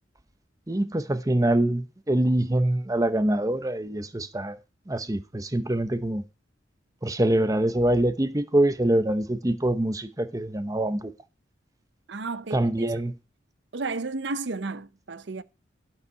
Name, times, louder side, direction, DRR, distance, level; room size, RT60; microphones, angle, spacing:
voice 1, 0.7-4.6 4.9-6.2 7.0-11.1 12.5-13.1, right 1 dB, 20° right, 0.8 m, -24 dB
voice 2, 12.1-12.9 13.7-15.4, right 3 dB, 65° right, 0.7 m, -33 dB
12.0 x 5.6 x 4.5 m
head